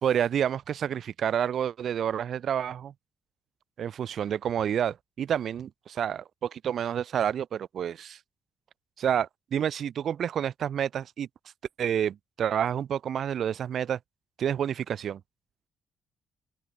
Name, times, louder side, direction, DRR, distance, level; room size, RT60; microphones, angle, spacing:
voice 1, 0.0-2.9 3.8-8.2 9.0-11.3 11.8-14.0 14.4-15.2, right 9 dB, 60° right, 2.4 m, -29 dB
open air
cardioid pair, 90°, 0 cm